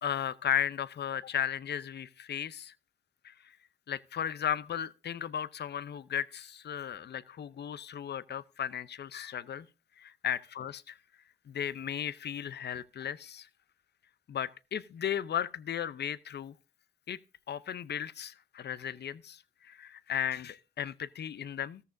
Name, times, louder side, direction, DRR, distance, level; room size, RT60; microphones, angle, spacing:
voice 1, 0.0-2.7 3.2-3.3 3.9-9.7 10.0-11.0 11.5-13.5 14.3-16.5 17.1-17.2 17.5-21.8, left 9 dB, 55° left, 0.7 m, -35 dB
14.0 x 13.5 x 2.6 m
cardioid pair, 75°, 20 cm